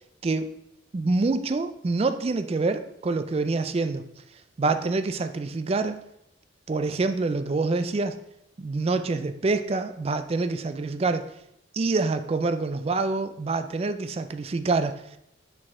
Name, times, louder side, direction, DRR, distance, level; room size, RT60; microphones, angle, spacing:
voice 1, 0.9-4.0 4.6-6.0 6.7-8.2 8.6-11.3 11.7-15.2, right 3 dB, 30° right, 10 dB, 0.3 m, -26 dB
6.1 x 4.9 x 3.6 m, 0.80 s
head